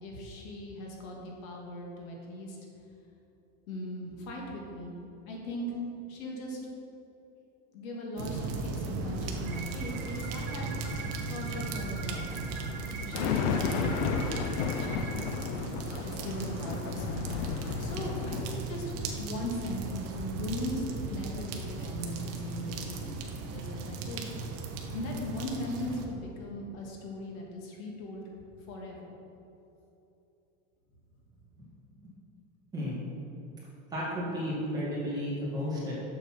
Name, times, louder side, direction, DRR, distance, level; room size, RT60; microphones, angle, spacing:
voice 1, 0.0-2.6 3.7-5.0 5.3-5.7 6.1-6.6 7.7-10.7 11.3-12.2 13.0-14.3 14.6-15.2 16.0-17.2 17.8-23.1 23.5-24.4 24.9-28.2 28.7-29.1, left 1 dB, 75° left, -1 dB, 2.1 m, -39 dB
sound 1, 8.2-26.1, right 3 dB, 35° right, 0.8 m, -37 dB
sound 2, 9.5-15.3, right 5 dB, 55° right, 1.6 m, -44 dB
sound 3, 13.1-18.6, left 6 dB, 55° left, 0.6 m, -33 dB
voice 2, 33.9-35.9, equal, 10° right, -8 dB, 2.2 m, -33 dB
7.2 x 6.8 x 6.0 m, 2.9 s
supercardioid pair, 170°, 41 cm